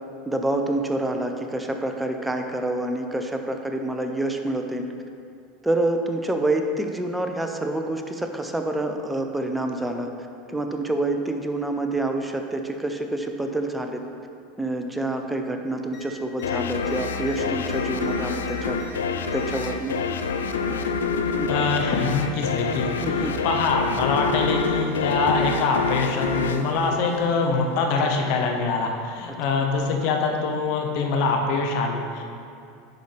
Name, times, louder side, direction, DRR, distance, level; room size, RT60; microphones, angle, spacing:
voice 1, 0.3-4.9 5.6-10.1 10.5-14.0 14.6-18.8 19.3-20.0 21.4-21.5 23.0-23.4 29.3-29.4, right 1 dB, 10° right, 4 dB, 0.6 m, -27 dB
sound 1, 15.9-16.1 16.3-16.5 16.8-18.9 19.3-19.8 20.8-21.5 22.5-22.6, left 4 dB, 30° left, 1.1 m, -47 dB
sound 2, 16.4-27.7, left 4 dB, 90° left, 0.4 m, -27 dB
voice 2, 21.5-32.3, left 4 dB, 65° left, 2 dB, 0.8 m, -24 dB
10.0 x 4.0 x 3.4 m, 2.6 s
hypercardioid pair, 95°, 0 cm